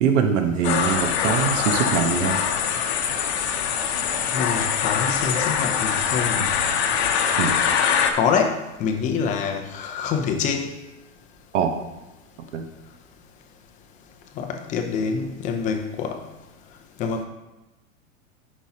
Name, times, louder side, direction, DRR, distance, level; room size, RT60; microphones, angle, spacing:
voice 1, 0.0-2.4 7.4-7.6 11.5-11.8 12.5-12.7, right 6 dB, 60° right, 5 dB, 1.2 m, -22 dB
sound 1, 0.6-8.1, left 7 dB, 55° left, 0.9 m, -23 dB
voice 2, 4.3-6.4 8.1-10.7 14.4-16.2 17.0-17.2, left 6 dB, 20° left, 5 dB, 0.6 m, -26 dB
10.0 x 5.6 x 2.9 m, 1.0 s
supercardioid pair, 150°, 40 cm